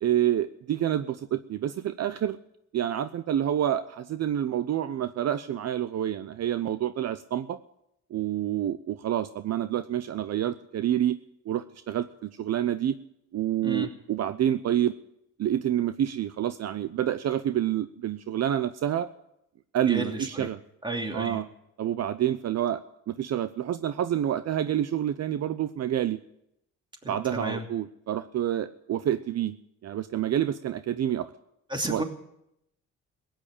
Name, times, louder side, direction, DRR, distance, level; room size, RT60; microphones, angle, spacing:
voice 1, 0.0-2.4 2.7-7.6 8.1-11.2 11.5-13.0 13.3-14.9 15.4-19.1 19.7-20.6 21.1-21.5 21.8-22.8 23.1-26.2 27.1-29.5 29.8-31.3 31.9-32.0, right 11 dB, 60° right, 12 dB, 0.7 m, -28 dB
voice 2, 19.9-20.5 20.8-21.4 27.0-27.6 31.7-32.0, right 1 dB, 15° right, 3 dB, 2.7 m, -32 dB
16.5 x 9.1 x 8.7 m, 0.81 s
cardioid pair, 90°, 30 cm